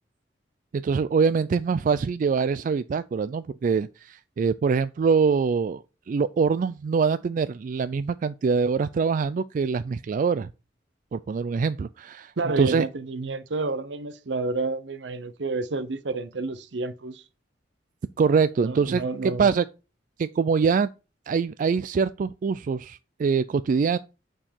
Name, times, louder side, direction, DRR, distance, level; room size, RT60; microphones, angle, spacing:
voice 1, 0.7-10.5 11.1-12.9 18.2-19.7 20.2-20.9 21.3-24.0, right 5 dB, 45° right, 0.3 m, -24 dB
voice 2, 12.4-17.2 18.6-19.5, right 3 dB, 70° right, 0.7 m, -30 dB
8.8 x 4.6 x 4.4 m
head